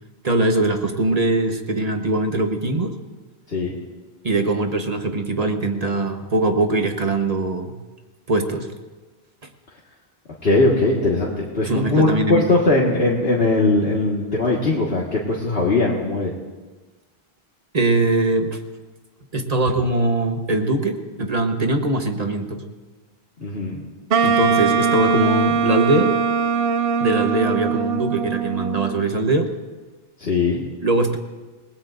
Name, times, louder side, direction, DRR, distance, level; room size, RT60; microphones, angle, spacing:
voice 1, 0.2-2.9 4.2-7.7 8.3-8.7 11.6-12.5 17.7-18.6 19.3-22.6 24.2-26.2 27.0-29.5 30.8-31.2, right 2 dB, 40° right, 5 dB, 1.2 m, -21 dB
voice 2, 10.4-16.3 23.4-23.8 30.2-30.6, left 2 dB, 70° left, -4 dB, 2.0 m, -20 dB
Wind instrument woodwind instrument, 24.1-29.1, right 6 dB, 65° right, 0.9 m, -21 dB
28.0 x 19.0 x 2.6 m, 1.3 s
omnidirectional pair, 1.1 m